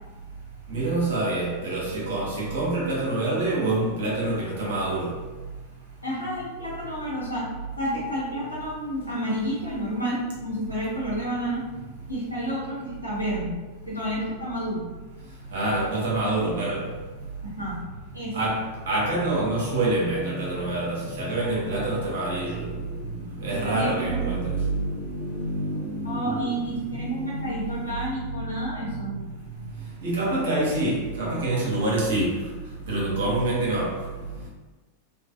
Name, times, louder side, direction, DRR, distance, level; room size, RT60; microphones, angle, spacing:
voice 1, 0.7-5.1 15.5-16.9 18.3-27.9 30.0-32.4 32.9-33.9, right 2 dB, 60° right, -5 dB, 0.9 m, -26 dB
voice 2, 6.0-7.5 7.8-11.7 12.1-13.6 13.9-14.9 17.4-17.8 18.1-18.4 23.4-24.3 26.0-29.2, equal, 90° left, -7 dB, 1.0 m, -30 dB
2.5 x 2.4 x 2.5 m, 1.3 s
figure-of-eight pair, 90°, 0 cm